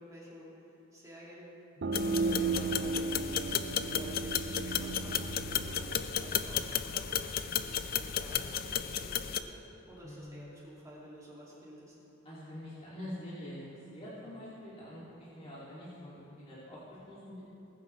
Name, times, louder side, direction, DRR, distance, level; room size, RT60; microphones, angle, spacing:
voice 1, 0.0-1.4 2.0-3.6 3.9-6.7 6.9-9.6 9.9-12.0, equal, 15° right, -6 dB, 2.3 m, -51 dB
sound 1, 1.8-7.2, right 4 dB, 55° right, 0.6 m, -35 dB
sound 2, 1.9-9.4, left 9 dB, 45° left, 0.4 m, -34 dB
voice 2, 10.0-10.6 12.2-17.4, left 1 dB, 30° left, -10 dB, 2.4 m, -46 dB
19.0 x 9.9 x 3.2 m, 2.9 s
head